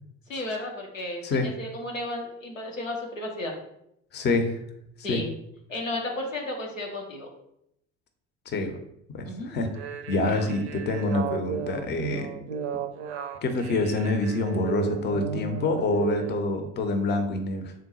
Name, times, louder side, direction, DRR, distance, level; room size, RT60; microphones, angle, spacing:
voice 1, 0.3-3.5 5.0-5.3 5.7-7.3 9.2-9.6 10.3-10.5, left 1 dB, 90° left, 0 dB, 0.6 m, -33 dB
voice 2, 4.1-4.5 5.1-5.2 8.5-8.8 9.1-9.7 10.1-12.3 13.4-17.7, left 2 dB, 30° left, 6 dB, 0.6 m, -26 dB
sound 1, 9.7-16.4, right 7 dB, 60° right, 0.5 m, -34 dB
3.7 x 2.2 x 4.1 m, 0.77 s
figure-of-eight pair, 60°, 38 cm